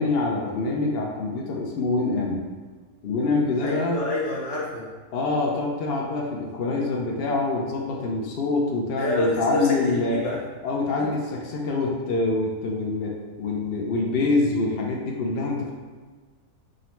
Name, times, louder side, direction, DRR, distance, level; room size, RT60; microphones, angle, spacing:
voice 1, 0.0-2.4 3.0-4.0 5.1-10.2 10.6-15.7, left 3 dB, 85° left, -1 dB, 0.5 m, -25 dB
voice 2, 3.6-4.9 9.0-10.4, left 1 dB, 50° left, -4 dB, 0.9 m, -27 dB
3.8 x 2.0 x 4.3 m, 1.4 s
omnidirectional pair, 1.7 m